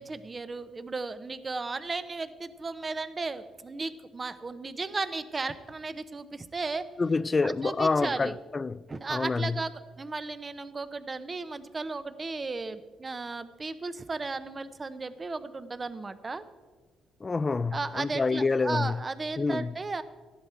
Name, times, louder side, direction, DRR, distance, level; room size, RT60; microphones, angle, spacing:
voice 1, 0.0-6.8 7.4-8.4 8.9-16.4 17.7-20.0, right 3 dB, 30° right, 0.8 m, -35 dB
voice 2, 7.0-8.8 9.1-9.5 17.2-18.9 19.4-19.7, left 4 dB, 30° left, 0.4 m, -27 dB
14.0 x 11.0 x 4.5 m
cardioid pair, 90°, 0 cm